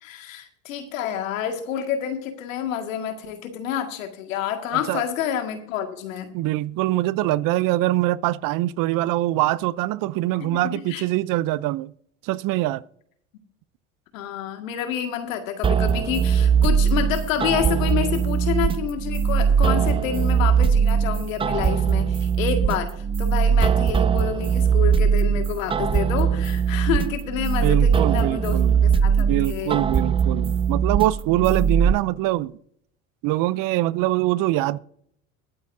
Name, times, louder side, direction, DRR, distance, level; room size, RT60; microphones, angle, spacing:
voice 1, 0.0-6.3 10.4-11.0 14.1-28.6 28.8-29.8, left 9 dB, 85° left, 1.9 m, -28 dB
voice 2, 6.3-11.9 12.2-12.8 27.6-28.8 29.2-32.5 33.2-34.8, right 16 dB, 55° right, 0.6 m, -23 dB
sound 1, 15.6-31.9, right 7 dB, 15° right, 0.4 m, -21 dB
22.0 x 8.4 x 2.6 m
hypercardioid pair, 80°, 39 cm